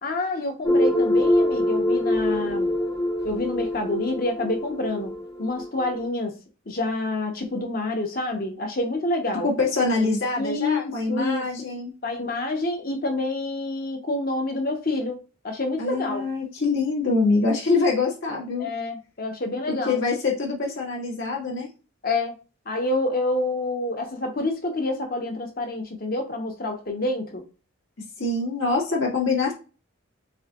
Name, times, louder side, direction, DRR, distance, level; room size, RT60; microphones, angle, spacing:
voice 1, 0.0-2.7 3.2-5.1 5.4-6.3 6.7-9.5 10.4-11.4 12.0-15.2 15.4-16.3 18.6-20.0 22.0-22.4 22.7-27.4, left 2 dB, 45° left, 1.0 m, -27 dB
sound 1, 0.6-6.0, left 1 dB, 15° left, 0.8 m, -24 dB
voice 2, 9.4-11.9 15.8-18.7 19.7-21.7 28.2-29.5, left 3 dB, 65° left, 1.8 m, -24 dB
7.0 x 2.8 x 2.4 m
head